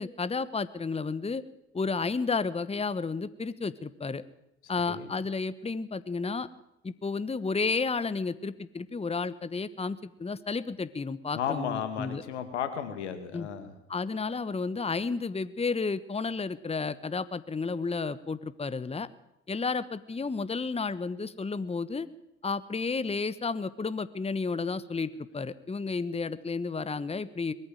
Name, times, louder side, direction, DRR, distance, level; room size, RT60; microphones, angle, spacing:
voice 1, 0.0-1.4 1.7-4.2 4.7-6.5 6.8-12.2 13.3-13.5 13.9-19.1 19.5-22.1 22.4-27.5, left 4 dB, 20° left, 16 dB, 1.2 m, -32 dB
voice 2, 11.3-13.7, left 8 dB, 85° left, 9 dB, 2.2 m, -34 dB
21.0 x 14.5 x 9.2 m, 0.87 s
hypercardioid pair, 55°, 34 cm